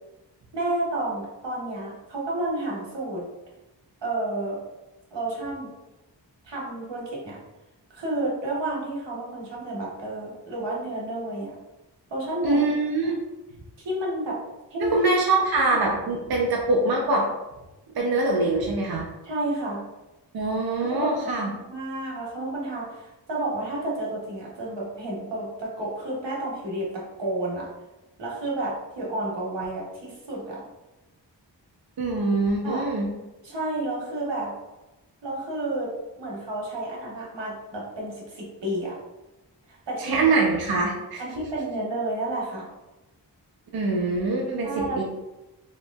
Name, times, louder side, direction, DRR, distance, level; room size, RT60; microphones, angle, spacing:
voice 1, 0.5-3.2 4.0-4.6 5.1-5.7 6.4-7.4 7.9-11.5 12.1-12.7 13.0-13.1 13.8-14.4 14.7-15.0 19.2-19.8 20.9-27.7 28.2-30.6 32.6-32.8 33.4-34.5 35.2-35.9 36.2-39.0 39.7-40.3 41.2-42.7 44.6-45.0, right 1 dB, 85° right, -4 dB, 0.9 m, -31 dB
voice 2, 12.4-13.2 14.8-17.3 17.9-19.1 20.3-21.5 32.0-33.1 40.0-41.2 43.7-45.0, right 3 dB, 60° right, -1 dB, 0.5 m, -24 dB
2.9 x 2.6 x 2.2 m, 1.0 s
wide cardioid pair, 50°, 42 cm